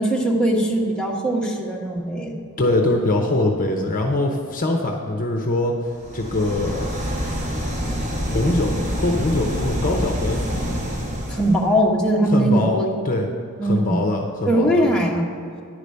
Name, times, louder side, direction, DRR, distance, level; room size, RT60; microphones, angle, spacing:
voice 1, 0.0-2.4 11.3-12.9 13.6-14.1 14.5-15.3, right 1 dB, 5° left, -3 dB, 1.2 m, -20 dB
voice 2, 2.6-5.7 6.1-6.8 8.3-10.4 12.3-13.3 13.6-14.8, left 2 dB, 40° left, 2 dB, 0.8 m, -22 dB
sound 1, 6.0-11.7, equal, 30° right, 1.5 m, -26 dB
10.5 x 4.9 x 6.8 m, 2.4 s
head